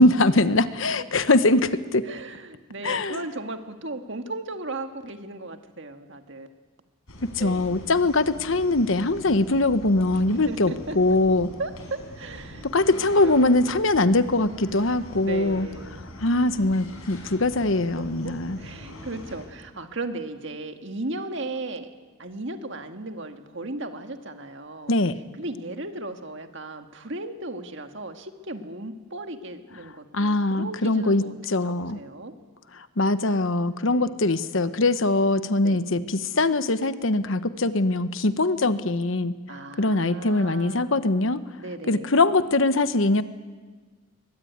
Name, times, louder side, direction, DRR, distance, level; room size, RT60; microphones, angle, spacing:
voice 1, 0.0-2.0 2.8-3.2 7.4-11.5 12.7-15.7 16.2-18.6 24.9-25.1 30.1-32.0 33.0-39.3 39.8-41.4 41.9-43.2, left 2 dB, 65° left, 12 dB, 1.1 m, -22 dB
voice 2, 2.1-6.5 7.4-7.9 9.2-9.6 10.3-11.0 11.6-12.7 12.9-13.5 15.2-16.1 18.2-21.9 22.2-24.9 25.4-31.3 31.7-32.3 33.9-34.1 35.6-35.8 38.6-38.7 39.5-41.0 41.6-42.2, right 2 dB, 55° right, 6 dB, 1.8 m, -36 dB
sound 1, 7.1-19.5, left 1 dB, 85° left, 5.5 m, -43 dB
23.0 x 22.5 x 9.5 m, 1.4 s
head